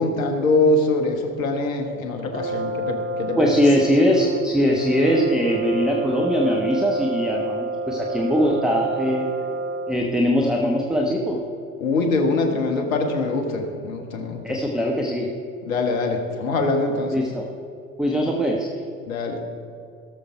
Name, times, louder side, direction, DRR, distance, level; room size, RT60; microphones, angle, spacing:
voice 1, 0.0-3.5 11.8-14.6 15.7-17.2 19.1-19.4, left 2 dB, 75° left, 4 dB, 1.5 m, -23 dB
Brass instrument, 2.3-10.1, right 2 dB, 30° right, 1.4 m, -29 dB
voice 2, 3.4-9.3 9.9-11.4 14.4-15.3 17.1-17.5 18.0-18.7, equal, ahead, 0 dB, 1.2 m, -21 dB
17.5 x 7.2 x 4.5 m, 2.4 s
figure-of-eight pair, 70°, 40 cm